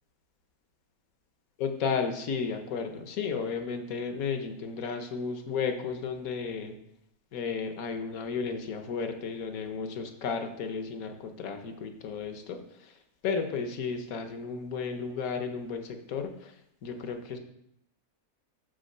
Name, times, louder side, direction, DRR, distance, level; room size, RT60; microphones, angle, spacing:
voice 1, 1.6-6.8 7.3-12.9 13.2-16.5 16.8-17.4, left 5 dB, 65° left, 6 dB, 1.3 m, -33 dB
6.3 x 5.0 x 6.5 m, 0.80 s
omnidirectional pair, 1.6 m